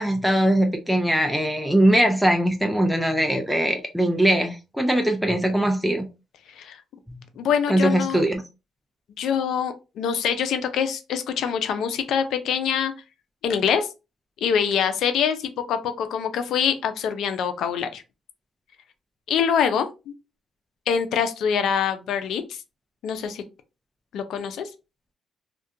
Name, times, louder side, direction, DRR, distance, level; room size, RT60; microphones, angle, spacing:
voice 1, 0.0-6.1 7.7-8.4, right 1 dB, ahead, 0.4 m, -21 dB
voice 2, 7.4-8.2 9.2-12.9 13.4-13.9 14.4-18.0 19.3-20.1 20.9-22.6 23.0-23.4 24.1-24.7, left 7 dB, 75° left, 0.4 m, -24 dB
2.4 x 2.2 x 2.6 m
cardioid pair, 90°, 0 cm